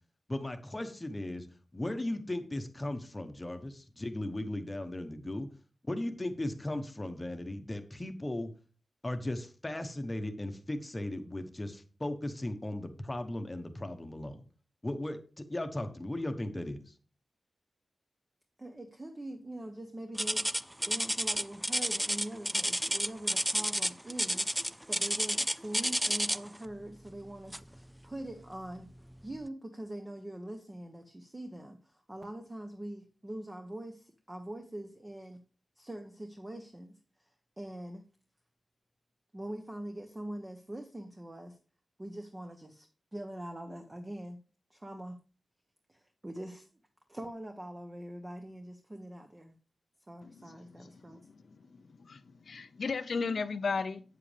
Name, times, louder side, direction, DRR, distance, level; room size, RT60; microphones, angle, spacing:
voice 1, 0.3-1.5 1.7-5.5 5.9-8.5 9.0-14.4 14.8-16.9, left 1 dB, 20° left, 8 dB, 1.0 m, -37 dB
voice 2, 18.6-20.5 20.8-28.9 29.2-35.4 35.8-36.9 37.6-38.0 39.3-41.6 42.0-44.4 44.7-45.2 45.9-46.7 47.1-49.5 50.1-51.2, right 1 dB, 20° right, 4 dB, 0.9 m, -43 dB
sound 1, 20.2-26.6 27.5-27.8 28.3-28.4 29.1-29.2, equal, 5° right, 0.3 m, -30 dB
voice 3, 50.2-54.0, left 4 dB, 70° left, 11 dB, 0.6 m, -36 dB
8.4 x 7.6 x 3.4 m, 0.38 s
wide cardioid pair, 110°, 0 cm